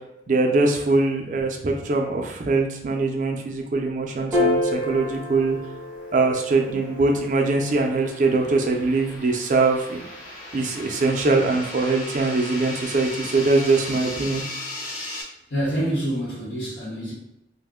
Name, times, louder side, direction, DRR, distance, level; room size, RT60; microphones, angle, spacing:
voice 1, 0.3-5.6 6.1-10.0 10.5-14.4, right 3 dB, 45° right, 2 dB, 0.4 m, -22 dB
Piano, 4.3-10.9, left 2 dB, 5° right, 0.6 m, -30 dB
sound 1, 4.9-15.2, left 1 dB, 45° left, 0.6 m, -38 dB
voice 2, 15.5-17.1, right 1 dB, 75° left, -7 dB, 1.0 m, -26 dB
2.5 x 2.1 x 3.5 m, 0.88 s
head